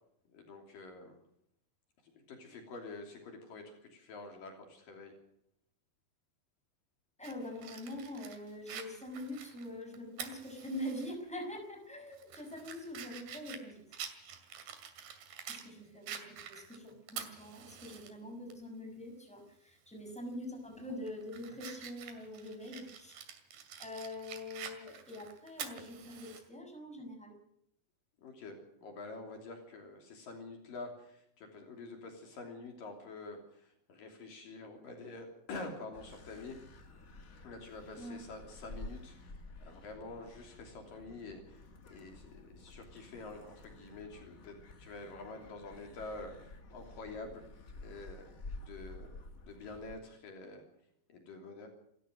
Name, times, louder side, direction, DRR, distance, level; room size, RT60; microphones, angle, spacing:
voice 1, 0.3-1.2 2.1-5.2 28.2-36.6 37.4-47.4 47.8-48.3 48.6-49.1 49.4-50.7 51.1-51.7, left 3 dB, 65° left, 3 dB, 4.6 m, -47 dB
voice 2, 7.2-14.1 15.5-23.2 23.8-27.4 38.0-38.3, left 1 dB, ahead, 4 dB, 5.9 m, -44 dB
Fire, 7.2-11.1 11.5-11.6 12.1-15.7 16.1-18.1 18.5-18.6 20.1-20.3 20.8-26.4, right 8 dB, 75° right, 4.2 m, -47 dB
sound 1, 35.9-50.0, left 2 dB, 40° left, 1.2 m, -51 dB
28.0 x 14.5 x 6.5 m, 0.75 s
omnidirectional pair, 4.4 m